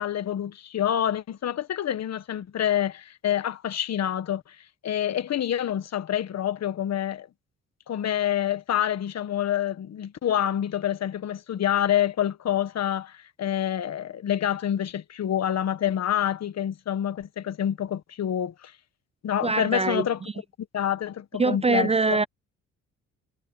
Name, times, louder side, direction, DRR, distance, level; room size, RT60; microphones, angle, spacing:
voice 1, 0.0-4.6 4.8-7.3 7.9-18.7 19.2-20.2 20.7-22.2, left 10 dB, 60° left, 1.6 m, -27 dB
voice 2, 19.4-20.0 21.4-22.2, right 4 dB, 20° right, 0.4 m, -23 dB
cardioid pair, 90°, 30 cm